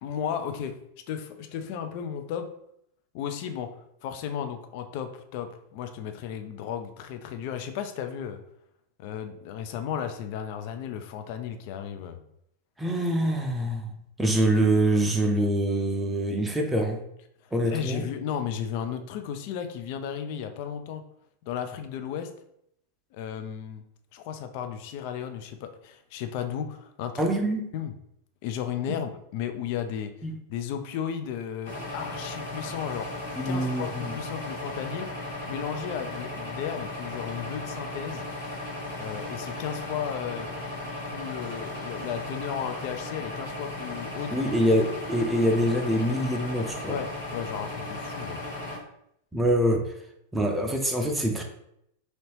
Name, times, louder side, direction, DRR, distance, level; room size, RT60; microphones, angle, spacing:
voice 1, 0.0-0.8 1.1-2.5 3.1-3.7 4.0-8.4 9.0-12.3 17.4-21.0 21.5-22.3 23.1-23.8 24.1-27.3 27.7-27.9 28.4-30.1 30.5-33.1 33.4-35.1 35.5-38.2 39.0-40.5 41.0-44.7 46.9-48.4, left 8 dB, 45° left, 7 dB, 0.3 m, -34 dB
voice 2, 12.8-13.9 14.2-17.0 17.5-18.0 27.2-27.6 28.9-29.0 30.2-30.3 33.4-34.1 44.3-47.0 49.3-49.9 50.3-51.4, right 1 dB, 10° right, 2 dB, 0.5 m, -25 dB
sound 1, 31.6-48.8, left 2 dB, 65° left, 1.4 m, -36 dB
3.0 x 2.8 x 3.0 m, 0.76 s
figure-of-eight pair, 90°, 0 cm